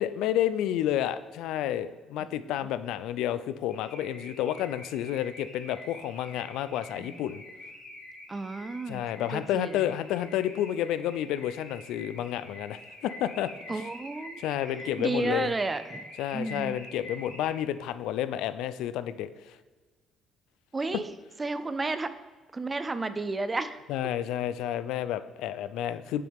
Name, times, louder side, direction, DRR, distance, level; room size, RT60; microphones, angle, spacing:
voice 1, 0.0-7.4 8.9-13.8 14.4-15.5 16.2-19.6 23.9-26.2, left 11 dB, 75° left, 14 dB, 0.4 m, -30 dB
voice 2, 2.2-2.6 7.0-7.2 8.3-9.0 9.3-9.9 13.7-14.5 15.0-16.0 16.3-16.8 20.7-21.1 21.4-22.1 22.5-23.8, right 3 dB, 15° right, 12 dB, 0.4 m, -32 dB
Car / Alarm, 3.7-17.8, left 1 dB, 35° left, 2.0 m, -46 dB
9.5 x 7.6 x 3.6 m, 1.4 s
cardioid pair, 180°, 0 cm